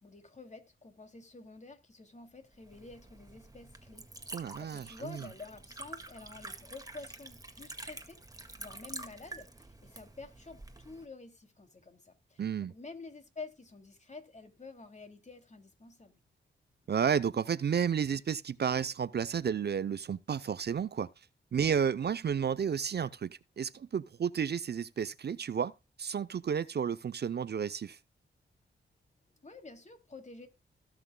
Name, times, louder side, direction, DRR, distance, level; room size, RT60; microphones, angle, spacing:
voice 1, 0.0-8.2 8.6-16.2 29.4-30.5, left 3 dB, 35° left, 2.7 m, -49 dB
Liquid, 2.5-11.0, right 2 dB, 15° right, 1.8 m, -48 dB
voice 2, 4.3-5.2 12.4-12.7 16.9-21.1 21.5-25.7 26.0-28.0, right 7 dB, 55° right, 0.6 m, -32 dB
17.5 x 6.2 x 2.2 m
cardioid pair, 65°, 21 cm